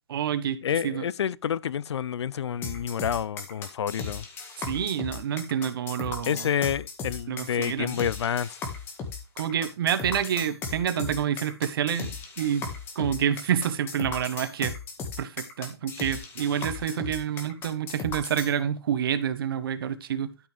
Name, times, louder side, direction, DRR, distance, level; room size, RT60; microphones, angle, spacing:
voice 1, 0.1-0.6 0.8-1.0 4.7-6.5 7.3-8.0 9.4-12.6 12.9-14.7 15.2-20.3, right 9 dB, 60° right, 1.3 m, -28 dB
voice 2, 0.6-4.2 6.3-8.6, left 8 dB, 90° left, 0.5 m, -28 dB
sound 1, 2.6-18.5, left 4 dB, 15° left, 1.7 m, -36 dB
12.5 x 6.0 x 3.4 m
hypercardioid pair, 160°, 14 cm